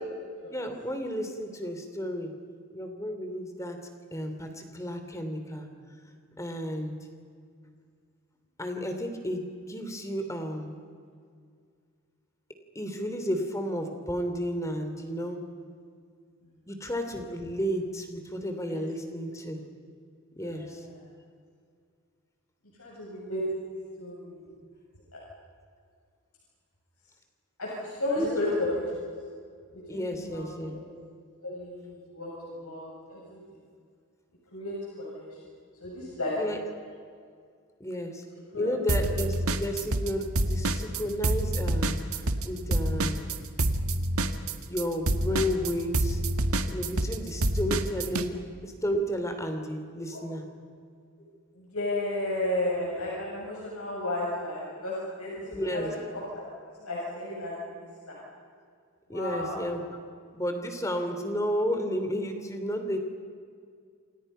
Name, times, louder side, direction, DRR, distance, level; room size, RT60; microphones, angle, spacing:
voice 1, 0.5-2.3 2.7-3.8 4.1-5.7 6.4-7.0 8.6-10.7 12.7-15.4 16.7-19.6 20.4-20.8 28.2-28.4 29.9-30.8 36.4-36.6 37.8-38.2 38.5-43.3 44.6-46.2 46.7-48.4 48.6-50.4 55.5-55.9 59.1-59.8 60.3-63.0, equal, 15° left, 5 dB, 3.1 m, -32 dB
voice 2, 20.4-20.9 22.8-23.4 24.0-24.4 25.1-25.2 27.6-28.8 29.7-30.8 31.4-32.3 32.6-33.4 34.5-35.2 35.8-36.3 38.5-38.7 50.0-50.2 51.6-55.9 56.1-56.4 56.8-58.2 59.1-59.6, left 1 dB, 75° left, -5 dB, 7.8 m, -33 dB
sound 1, 38.9-40.1 40.4-48.3, right 1 dB, 75° right, 1.6 m, -27 dB
29.0 x 27.5 x 5.7 m, 2.2 s
head